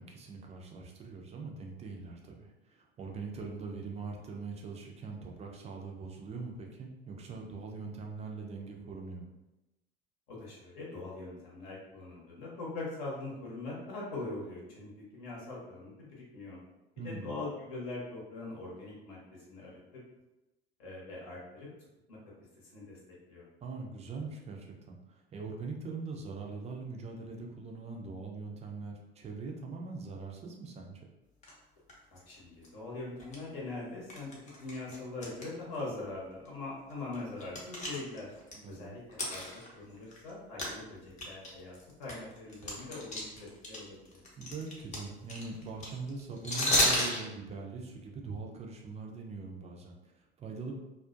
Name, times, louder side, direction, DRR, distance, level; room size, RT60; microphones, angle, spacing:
voice 1, 0.0-9.3 17.0-17.4 23.6-31.0 38.5-38.9 44.4-50.8, right 4 dB, 20° right, 0 dB, 0.5 m, -42 dB
voice 2, 10.3-16.6 17.0-19.2 19.5-20.0 20.8-21.7 22.1-22.2 22.7-23.0 23.3-23.5 32.1-34.3 34.6-38.3 38.7-39.0 39.3-44.1, left 2 dB, 55° left, -4 dB, 1.0 m, -42 dB
sound 1, 31.4-31.5 31.9-32.2 32.6-32.7 33.2-33.4 34.1-35.5 35.7-35.8 36.5-36.6 36.9-38.5 39.1-40.3 40.6-40.7 41.1-43.8 44.1-47.2, left 1 dB, 25° left, 0.7 m, -32 dB
2.4 x 2.1 x 2.5 m, 0.98 s
figure-of-eight pair, 70°, 30 cm